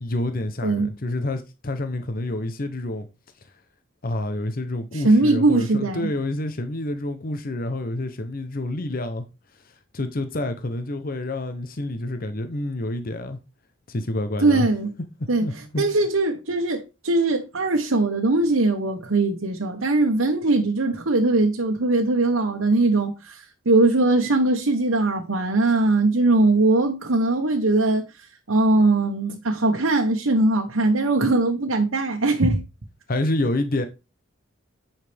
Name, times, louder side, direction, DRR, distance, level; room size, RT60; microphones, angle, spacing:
voice 1, 0.0-3.1 4.0-9.2 9.9-13.4 13.9-14.7 15.4-15.8 33.1-33.8, left 1 dB, 45° left, 0.8 m, -28 dB
voice 2, 4.9-6.1 14.4-14.9 15.3-32.6, right 2 dB, 80° right, 1.2 m, -21 dB
9.6 x 5.7 x 3.5 m
head